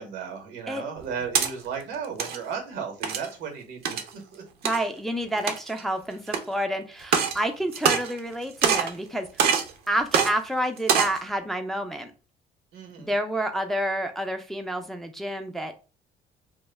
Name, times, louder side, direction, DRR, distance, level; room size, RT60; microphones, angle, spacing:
voice 1, 0.0-4.7 12.7-13.1, right 6 dB, 90° right, 3 dB, 0.9 m, -35 dB
sound 1, 1.0-1.5 2.0-2.4 3.0-3.3 3.9-4.1 4.7-4.8 5.4-5.8 6.3-6.4 7.0-7.4 7.7-8.3 8.6-9.0 9.4-9.7 10.1-10.3 10.8-11.2, right 7 dB, 65° right, 0.5 m, -23 dB
voice 2, 4.6-9.4 9.9-12.1 13.0-15.8, right 1 dB, ahead, 5 dB, 0.3 m, -29 dB
2.1 x 2.1 x 3.2 m, 0.33 s
cardioid pair, 110°, 17 cm